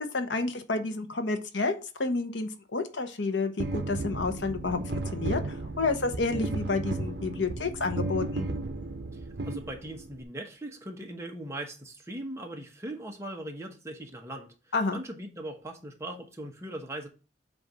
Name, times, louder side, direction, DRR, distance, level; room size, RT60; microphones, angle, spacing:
voice 1, 0.0-8.5 14.7-15.0, left 3 dB, 75° left, 0.9 m, -30 dB
sound 1, 3.6-10.2, right 2 dB, 60° right, 0.9 m, -34 dB
voice 2, 9.1-14.5 14.9-17.1, right 1 dB, 15° right, 1.1 m, -40 dB
7.9 x 2.6 x 5.9 m
head